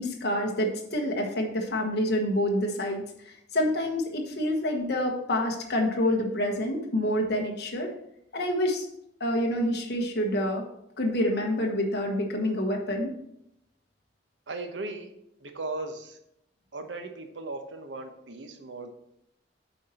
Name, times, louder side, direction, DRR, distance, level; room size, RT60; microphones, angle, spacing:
voice 1, 0.0-7.9 8.3-8.9 9.2-10.6 11.0-13.2, left 1 dB, 65° left, 1 dB, 1.2 m, -27 dB
voice 2, 14.5-15.1 15.4-16.2 16.7-18.9, right 2 dB, 85° right, 6 dB, 1.0 m, -37 dB
8.2 x 4.4 x 4.2 m, 0.77 s
head